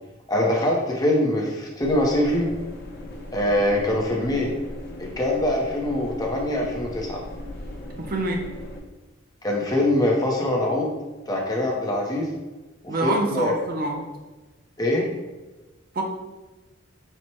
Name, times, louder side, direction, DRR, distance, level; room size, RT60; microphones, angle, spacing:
voice 1, 0.3-2.5 3.3-4.5 5.0-7.2 9.4-10.9 11.3-12.3 12.8-13.6 14.8-15.1, left 1 dB, 20° left, -1 dB, 0.7 m, -23 dB
sound 1, 1.8-8.8, left 1 dB, 55° left, 0.7 m, -38 dB
voice 2, 8.0-8.4 12.9-14.0 15.9-16.0, right 2 dB, 50° right, 2 dB, 0.5 m, -26 dB
4.3 x 2.1 x 4.3 m, 1.2 s
head